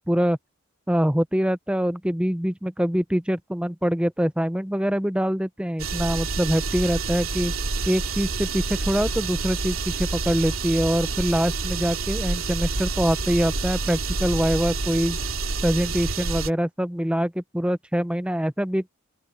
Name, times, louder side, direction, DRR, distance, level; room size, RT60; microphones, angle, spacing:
voice 1, 0.1-0.4 0.9-7.5 7.9-15.2 15.6-18.9, equal, 5° right, 0.6 m, -24 dB
sound 1, 5.8-16.5, right 3 dB, 90° right, 2.8 m, -28 dB
open air
head